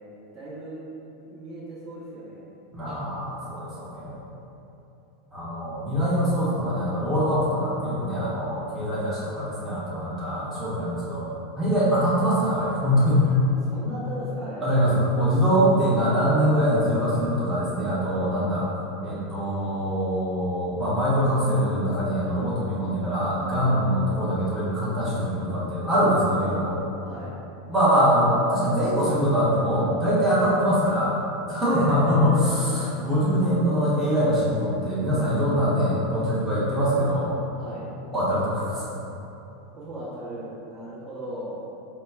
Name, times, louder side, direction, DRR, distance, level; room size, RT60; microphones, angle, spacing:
voice 1, 0.3-0.8 1.2-2.4 8.7-9.1 13.5-14.7 18.2-18.5 23.7-23.9 26.7-27.3 31.7-33.0 37.6-37.9 39.7-41.7, right 1 dB, 35° right, -9 dB, 1.3 m, -38 dB
voice 2, 2.7-4.2 5.3-11.3 11.6-13.4 14.6-18.7 19.0-26.7 27.7-31.1 31.5-37.3 38.1-38.9, equal, 5° right, -12 dB, 1.0 m, -23 dB
4.3 x 2.2 x 3.4 m, 2.9 s
figure-of-eight pair, 85°, 0 cm